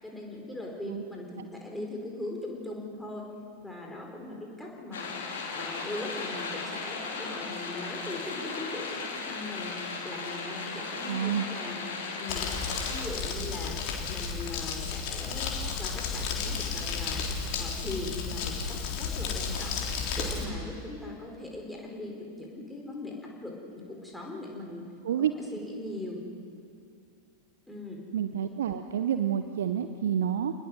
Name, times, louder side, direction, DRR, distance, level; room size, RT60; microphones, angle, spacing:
voice 1, 0.0-3.3 3.6-5.1 5.5-9.7 10.0-11.8 12.2-12.5 12.9-13.8 14.1-17.2 17.5-19.8 20.1-24.8 25.5-26.2 27.7-28.0, left 2 dB, 5° left, -1 dB, 4.5 m, -40 dB
sound 1, 4.9-13.0, left 4 dB, 60° left, 3.6 m, -36 dB
voice 2, 11.1-11.5 25.0-25.3 28.1-30.5, right 9 dB, 60° right, 9 dB, 0.9 m, -29 dB
Crumpling crinkling, 12.3-20.4, left 5 dB, 45° left, 3.5 m, -33 dB
28.0 x 20.0 x 6.4 m, 2.5 s
figure-of-eight pair, 90°, 0 cm